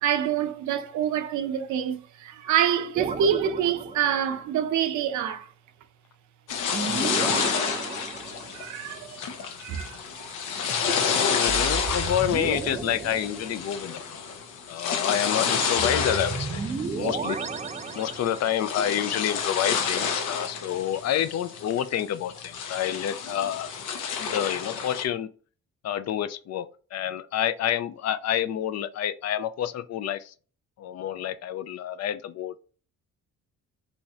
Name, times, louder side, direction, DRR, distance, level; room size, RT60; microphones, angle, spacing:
voice 1, 0.0-5.5 8.5-9.2 9.6-10.3, right 9 dB, 70° right, 0.6 m, -26 dB
sound 1, 2.9-4.5 6.7-8.8 11.5-14.0 15.8-18.7, right 5 dB, 25° right, 0.4 m, -33 dB
sound 2, 6.5-25.0, left 6 dB, 90° left, 0.7 m, -30 dB
voice 2, 11.3-14.2 14.7-16.6 16.9-17.4 17.9-23.7 24.2-25.3 25.8-30.3 30.8-32.6, left 10 dB, 60° left, 0.4 m, -28 dB
3.1 x 2.6 x 3.4 m
cardioid pair, 90°, 30 cm